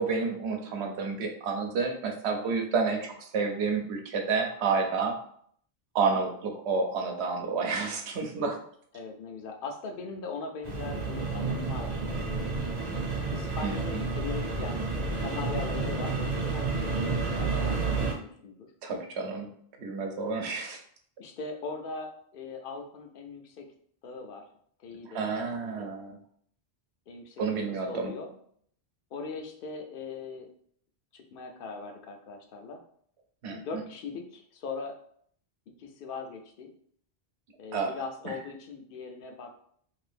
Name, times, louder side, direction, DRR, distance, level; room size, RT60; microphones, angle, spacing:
voice 1, 0.0-3.0 3.3-5.2 5.9-8.6 13.6-14.0 18.8-19.5 19.8-20.8 25.1-26.1 27.4-28.1 33.4-33.6 37.7-37.9, right 4 dB, 85° right, 4 dB, 0.9 m, -30 dB
voice 2, 2.7-3.1 8.9-12.5 13.3-14.9 15.2-18.7 20.2-20.5 21.2-23.7 24.0-24.5 24.8-25.3 25.6-25.9 27.1-28.4 29.1-30.5 31.1-32.8 33.5-35.0 35.8-36.7 37.6-39.6, left 4 dB, 60° left, 3 dB, 0.7 m, -40 dB
sound 1, 10.6-18.1, right 3 dB, 45° right, 0.8 m, -30 dB
2.7 x 2.6 x 3.3 m, 0.63 s
omnidirectional pair, 1.1 m